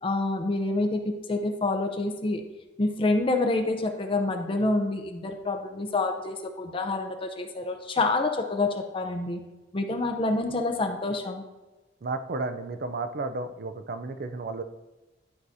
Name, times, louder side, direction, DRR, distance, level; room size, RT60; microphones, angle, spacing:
voice 1, 0.0-2.4 2.8-9.4 9.7-11.4, left 2 dB, 30° left, 5 dB, 0.5 m, -27 dB
voice 2, 12.0-14.6, right 3 dB, 55° right, 9 dB, 0.4 m, -32 dB
11.5 x 4.7 x 2.7 m, 1.1 s
head